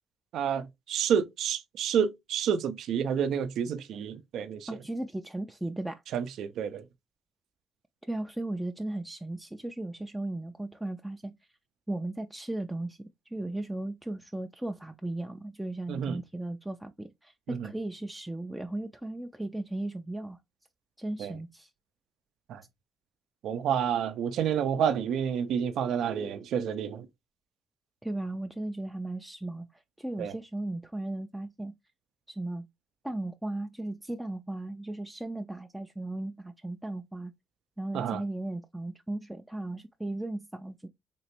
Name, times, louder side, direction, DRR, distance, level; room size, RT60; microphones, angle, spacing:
voice 1, 0.3-4.7 6.1-6.8 15.9-16.2 17.5-17.7 21.2-21.3 22.5-22.6 23.4-27.1 30.2-30.3 37.9-38.2, right 8 dB, 75° right, 0.4 m, -29 dB
voice 2, 4.7-6.0 8.1-11.3 11.9-20.4 21.0-21.7 28.0-31.7 32.3-32.7 33.0-37.3 37.8-40.9, right 1 dB, 5° right, 0.3 m, -36 dB
3.3 x 3.0 x 2.9 m
cardioid pair, 90°, 0 cm